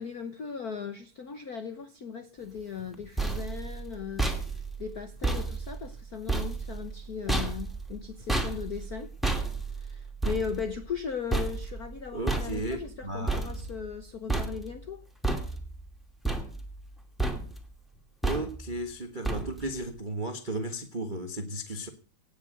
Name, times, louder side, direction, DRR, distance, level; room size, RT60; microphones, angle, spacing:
voice 1, 0.0-4.2 4.8-9.1 9.7-15.0, left 6 dB, 75° left, 0.8 m, -38 dB
sound 1, 2.8-14.0 14.3-14.9 15.2-15.9 16.2-16.9 17.2-17.7 18.2-18.8 19.2-19.8, right 3 dB, ahead, 2.0 m, -32 dB
voice 2, 12.1-13.6 18.2-21.9, right 1 dB, 35° right, 0.7 m, -35 dB
18.0 x 7.1 x 7.7 m
omnidirectional pair, 3.3 m